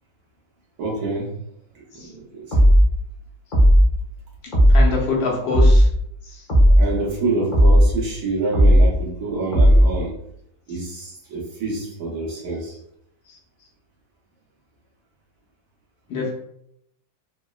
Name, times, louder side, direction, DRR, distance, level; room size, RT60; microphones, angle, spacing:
voice 1, 0.8-1.3 1.7-2.7 6.7-10.1 10.7-12.8, right 3 dB, 60° right, -5 dB, 1.2 m, -27 dB
sound 1, 2.5-2.9 3.5-3.9 4.5-4.9 5.5-5.9 6.5-6.9 7.5-7.9 8.5-8.9 9.5-9.9, equal, 40° left, 0.7 m, -13 dB
voice 2, 4.4-5.9 6.2-6.4 10.7-10.8 11.8-11.9 13.3-13.4 16.1-16.3, left 4 dB, 85° left, -3 dB, 1.5 m, -26 dB
3.8 x 2.0 x 2.2 m, 0.75 s
omnidirectional pair, 2.0 m